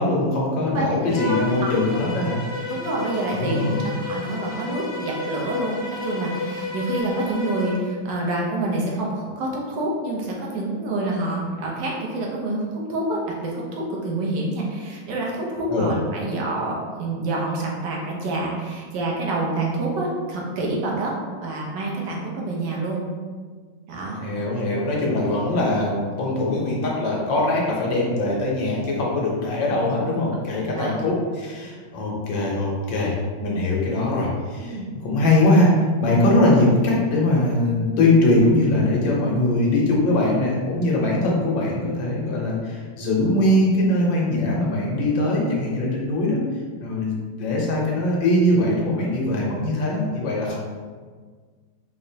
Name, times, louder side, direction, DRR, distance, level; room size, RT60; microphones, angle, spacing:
voice 1, 0.0-2.4 3.3-3.8 15.7-15.9 24.2-33.1 33.4-35.7 36.0-46.4 46.8-50.6, left 1 dB, 80° left, -3 dB, 1.5 m, -21 dB
voice 2, 0.6-2.0 2.7-23.0 23.9-24.2 24.9-25.0 30.0-30.1 30.7-30.9 34.6-34.8, right 2 dB, 75° right, -2 dB, 1.3 m, -27 dB
Bowed string instrument, 1.1-7.8, left 3 dB, 35° left, 1.0 m, -31 dB
4.8 x 2.1 x 2.7 m, 1.5 s
omnidirectional pair, 2.0 m